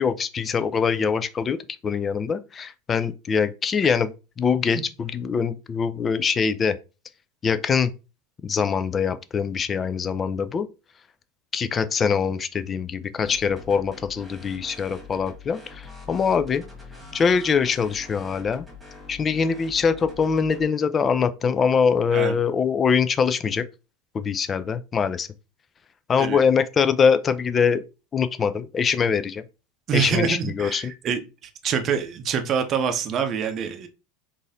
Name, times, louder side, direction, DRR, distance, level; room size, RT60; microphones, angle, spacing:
voice 1, 0.0-1.6 1.8-6.7 7.4-7.9 8.4-10.7 11.5-16.6 17.1-18.7 19.1-23.6 24.1-25.3 26.1-27.8 28.1-29.4 29.9-30.9, left 6 dB, 30° left, 0.3 m, -23 dB
sound 1, 13.2-20.7, left 4 dB, 10° right, 1.4 m, -44 dB
voice 2, 29.9-31.2 31.6-33.9, right 7 dB, 40° right, 0.6 m, -25 dB
3.8 x 2.6 x 2.6 m
hypercardioid pair, 85°, 0 cm